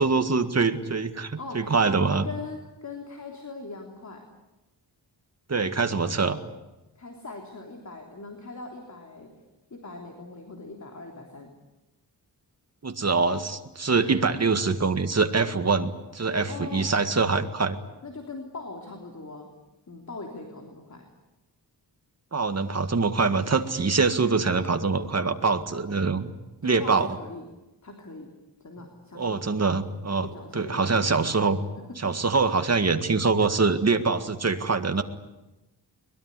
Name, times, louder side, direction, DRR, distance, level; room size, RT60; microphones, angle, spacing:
voice 1, 0.0-2.3 5.5-6.4 12.8-17.8 22.3-26.3 26.6-27.1 29.2-30.3 30.5-31.6 32.0-35.0, right 4 dB, 35° right, 8 dB, 1.9 m, -24 dB
voice 2, 1.4-4.2 6.9-9.3 9.7-11.5 16.3-16.9 18.0-19.5 19.9-21.1 26.6-27.5 27.8-28.3 28.6-29.5 30.1-31.2, left 3 dB, 40° left, 3 dB, 3.4 m, -41 dB
23.0 x 21.5 x 9.8 m, 1.0 s
wide cardioid pair, 130°, 42 cm